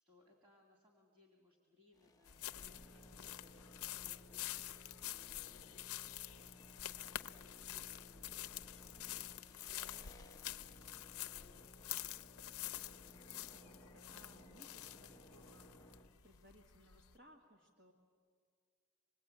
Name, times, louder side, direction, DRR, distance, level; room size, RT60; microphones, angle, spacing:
voice 1, 0.0-11.8, left 3 dB, 25° right, 0 dB, 2.3 m, -71 dB
sound 1, 1.9-16.5, equal, 15° left, 0.7 m, -60 dB
sound 2, 2.2-17.1, left 13 dB, 80° left, 0.6 m, -48 dB
voice 2, 13.3-15.8 16.2-17.9, equal, 45° right, -1 dB, 1.9 m, -64 dB
26.0 x 19.5 x 8.7 m, 2.1 s
head